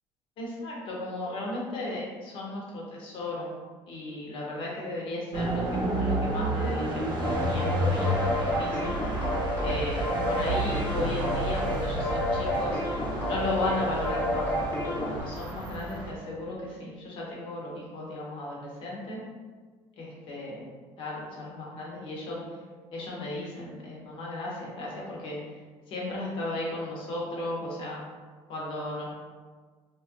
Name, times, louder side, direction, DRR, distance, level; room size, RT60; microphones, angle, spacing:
voice 1, 0.4-3.5 3.9-8.9 9.6-12.8 13.3-14.5 14.8-19.2 20.0-20.6 21.0-22.4 22.9-25.4 25.9-28.0 28.5-29.1, left 1 dB, 55° left, -4 dB, 0.9 m, -35 dB
sound 1, 5.3-16.1, right 1 dB, 45° right, 0.7 m, -31 dB
sound 2, 7.2-15.2, left 1 dB, 20° left, 0.8 m, -30 dB
3.0 x 2.3 x 2.8 m, 1.5 s
cardioid pair, 140°, 11 cm